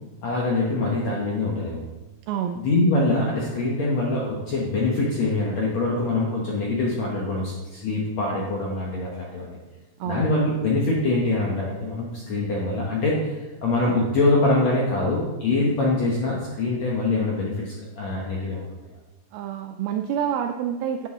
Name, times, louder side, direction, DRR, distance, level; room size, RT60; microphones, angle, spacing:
voice 1, 0.2-1.8 2.6-9.6 10.1-18.7, left 2 dB, 70° left, -3 dB, 1.7 m, -24 dB
voice 2, 2.3-2.6 10.0-10.2 19.3-21.1, right 9 dB, 85° right, 6 dB, 2.1 m, -27 dB
10.5 x 7.9 x 3.7 m, 1.1 s
omnidirectional pair, 4.8 m